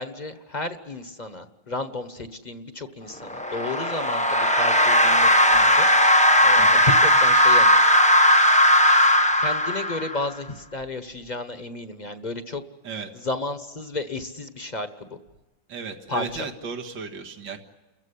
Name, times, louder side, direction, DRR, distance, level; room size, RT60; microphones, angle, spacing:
voice 1, 0.0-5.9 6.4-7.8 9.4-12.6 13.1-15.2 16.1-16.5, left 2 dB, 30° left, 9 dB, 1.1 m, -32 dB
sound 1, 3.2-10.3, equal, 5° left, 0.6 m, -17 dB
voice 2, 15.7-17.6, right 5 dB, 80° right, 3 dB, 2.4 m, -35 dB
30.0 x 15.0 x 9.9 m, 1.2 s
omnidirectional pair, 2.0 m